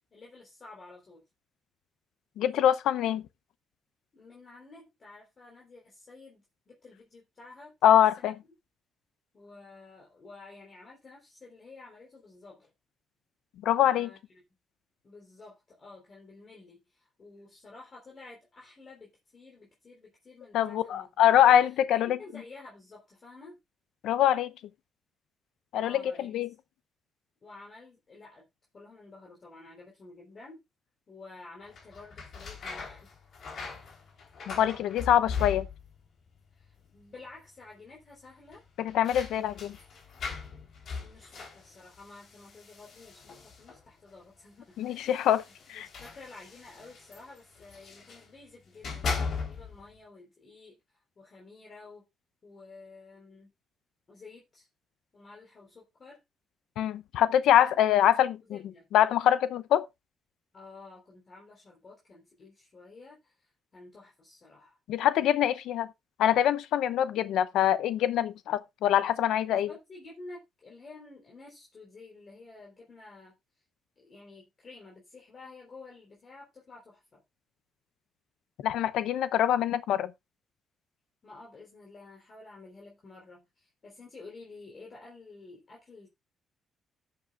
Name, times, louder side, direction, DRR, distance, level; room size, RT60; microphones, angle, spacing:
voice 1, 0.1-1.2 4.1-8.3 9.3-12.7 13.8-14.2 15.0-19.1 19.3-23.6 25.8-26.4 27.4-28.5 28.7-30.6 31.1-33.2 36.5-38.6 39.3-39.8 41.0-45.1 45.7-50.8 51.2-52.0 52.4-53.5 54.1-54.7 55.1-56.2 57.6-57.7 58.4-58.9 60.5-64.8 69.5-73.4 74.0-77.2 81.2-86.1, left 3 dB, 40° left, 3.7 m, -51 dB
voice 2, 2.4-3.2 7.8-8.3 13.6-14.1 20.5-22.2 24.0-24.5 25.7-26.5 34.5-35.7 38.8-39.8 44.8-45.4 45.7-45.9 56.8-58.4 58.9-59.9 64.9-65.9 66.2-69.7 78.6-80.1, left 11 dB, 85° left, 0.6 m, -24 dB
sound 1, 31.7-36.1 36.3-37.0 37.3-37.4 38.5-43.9 44.8-48.3 48.7-49.9, left 5 dB, 60° left, 3.5 m, -39 dB
14.0 x 7.8 x 2.4 m
cardioid pair, 90°, 0 cm